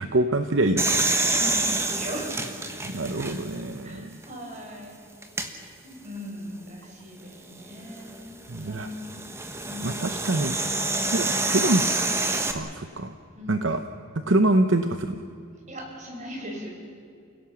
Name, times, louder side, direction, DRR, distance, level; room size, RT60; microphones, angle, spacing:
voice 1, 0.0-1.3 2.8-4.2 8.5-8.9 9.8-10.6 11.1-11.8 12.5-13.1 13.5-13.8 14.1-15.2, right 2 dB, 60° right, 8 dB, 0.9 m, -25 dB
sound 1, 0.8-3.7 4.2-4.3 5.2-5.5 7.6-12.5, right 2 dB, 15° right, 1.3 m, -27 dB
voice 2, 1.3-2.5 3.8-5.0 5.8-9.2 9.5-10.1 13.3-13.8 15.7-16.7, equal, 35° right, 1 dB, 4.8 m, -39 dB
29.5 x 17.0 x 7.2 m, 2.4 s
head